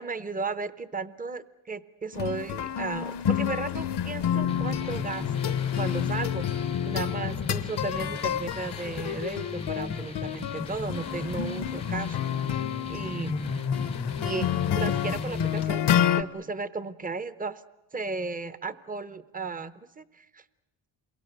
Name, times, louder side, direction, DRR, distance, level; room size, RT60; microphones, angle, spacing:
voice 1, 0.0-6.5 6.9-12.2 12.9-13.4 14.2-15.9 16.2-17.6 17.9-20.4, right 3 dB, 15° right, 14 dB, 0.8 m, -35 dB
sound 1, 2.1-16.2, left 9 dB, 55° left, 0.8 m, -29 dB
sound 2, 4.5-15.6, left 3 dB, 15° left, 0.7 m, -37 dB
28.0 x 23.0 x 6.7 m, 0.99 s
cardioid pair, 105°, 48 cm